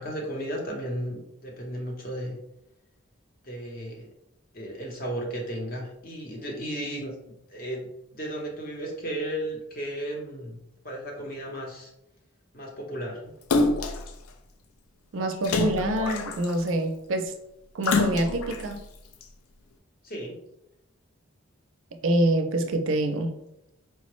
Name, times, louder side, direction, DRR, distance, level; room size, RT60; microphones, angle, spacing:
voice 1, 0.0-2.4 3.4-4.1 4.5-7.9 8.1-10.6 10.8-11.9 12.5-13.2 20.0-20.4, right 1 dB, 40° left, 0 dB, 0.7 m, -34 dB
Splash splatter, 13.5-14.1 15.4-16.7 17.8-18.6 19.2-19.3, left 3 dB, 90° left, 0.4 m, -25 dB
voice 2, 15.1-17.3 17.7-18.8 22.0-23.4, right 1 dB, 65° right, 5 dB, 0.4 m, -26 dB
4.5 x 2.0 x 3.0 m, 0.83 s
head